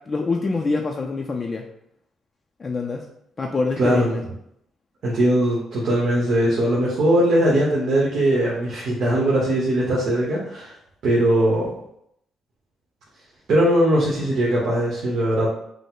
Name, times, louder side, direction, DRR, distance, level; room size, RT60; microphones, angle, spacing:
voice 1, 0.0-1.7 2.6-3.1 3.4-4.2, left 3 dB, 35° left, 1 dB, 0.4 m, -25 dB
voice 2, 3.8-4.2 5.0-10.7 11.0-11.7 13.5-15.5, right 1 dB, 65° right, -5 dB, 1.2 m, -20 dB
5.2 x 2.1 x 3.8 m, 0.76 s
cardioid pair, 90°, 0 cm